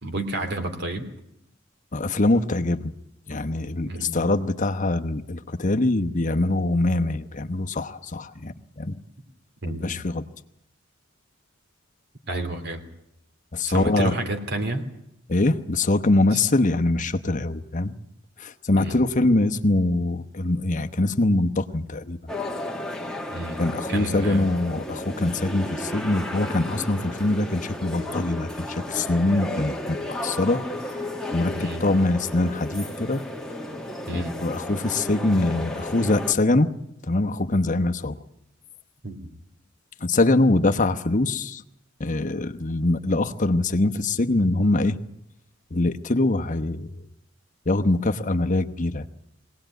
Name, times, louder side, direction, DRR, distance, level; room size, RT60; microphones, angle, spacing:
voice 1, 0.0-1.1 3.9-4.2 9.6-9.9 12.3-12.8 13.7-14.8 18.8-19.1 23.3-23.6 23.9-24.5 31.5-31.9 34.1-34.4 39.0-39.3, right 2 dB, 60° right, 7 dB, 3.1 m, -30 dB
voice 2, 1.9-2.9 3.3-9.0 9.7-10.2 13.5-14.1 15.3-17.9 18.4-22.2 23.6-30.6 31.3-33.2 34.1-36.7 37.1-38.2 40.0-41.6 42.0-45.0 45.7-46.9 47.7-49.1, left 2 dB, 40° left, 7 dB, 1.0 m, -23 dB
sound 1, 22.3-36.3, left 1 dB, 5° left, 1.6 m, -33 dB
22.0 x 18.0 x 9.1 m, 0.80 s
head